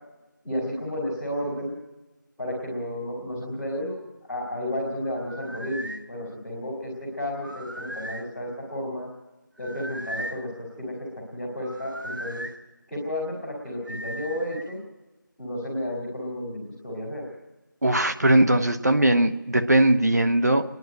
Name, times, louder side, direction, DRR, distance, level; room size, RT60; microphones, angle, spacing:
voice 1, 0.4-1.7 2.4-4.0 4.3-9.1 9.6-10.5 10.8-10.9 11.3-12.5 12.9-14.8 15.4-17.2, left 1 dB, ahead, -16 dB, 1.4 m, -32 dB
sound 1, 5.2-6.0 7.3-8.3 9.6-10.4 11.6-12.5 13.9-14.7, equal, 80° right, 3.4 m, -37 dB
voice 2, 17.8-20.6, right 1 dB, 55° right, 6 dB, 1.1 m, -20 dB
26.5 x 11.0 x 9.0 m, 1.1 s
figure-of-eight pair, 175°, 11 cm